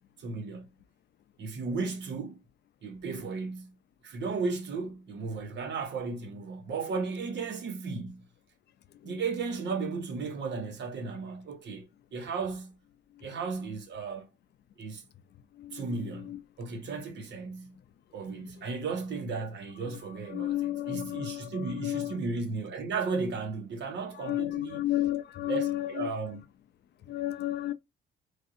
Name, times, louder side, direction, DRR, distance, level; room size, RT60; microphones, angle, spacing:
voice 1, 0.2-0.7 1.4-2.4 2.8-3.7 4.0-8.2 9.0-11.8 12.1-12.7 13.2-14.3 14.8-15.0 15.7-17.7 18.1-24.8 25.5-26.4, right 4 dB, 65° right, 1.0 m, -35 dB
voice 2, 15.5-16.4 18.3-18.7 19.9-22.2 24.1-26.1 27.0-27.7, left 14 dB, 60° left, 0.4 m, -33 dB
3.2 x 2.7 x 2.5 m
cardioid pair, 90°, 20 cm